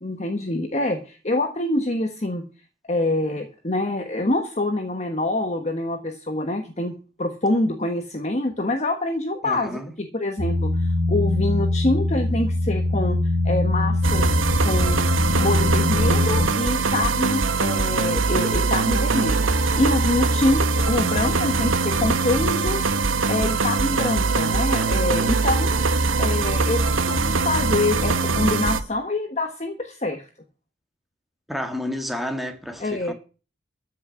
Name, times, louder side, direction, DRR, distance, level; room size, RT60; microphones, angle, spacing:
voice 1, 0.0-2.4 2.9-6.9 7.2-14.3 14.6-15.0 15.4-19.5 19.8-25.7 26.1-30.3 32.8-33.1, left 2 dB, 35° left, 1.3 m, -25 dB
voice 2, 9.4-9.9 31.5-33.1, left 1 dB, ahead, 1.7 m, -30 dB
sound 1, 10.4-16.5, left 2 dB, 65° right, 1.6 m, -22 dB
sound 2, 14.0-28.8, right 3 dB, 80° right, 1.0 m, -22 dB
14.0 x 6.1 x 8.7 m
head